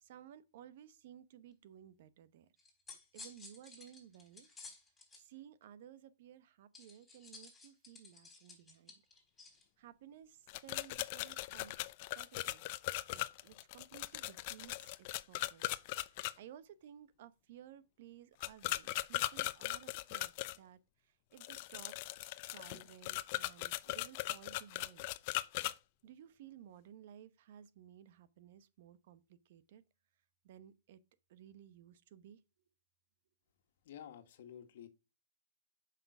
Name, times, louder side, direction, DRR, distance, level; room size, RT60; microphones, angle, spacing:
voice 1, 0.0-2.5 3.1-4.5 5.1-9.0 9.8-11.7 12.2-12.7 13.1-22.0 22.2-25.1 26.0-29.8 30.4-31.0 31.3-32.4, right 10 dB, 60° right, 1.0 m, -57 dB
sound 1, 2.6-5.2 6.7-9.6, left 3 dB, 10° left, 4.0 m, -54 dB
sound 2, 10.5-16.3 18.4-20.6 21.4-25.7, left 18 dB, 45° left, 0.6 m, -39 dB
voice 2, 33.8-34.9, left 9 dB, 65° left, 1.6 m, -51 dB
7.7 x 5.9 x 6.1 m
hypercardioid pair, 140°, 0 cm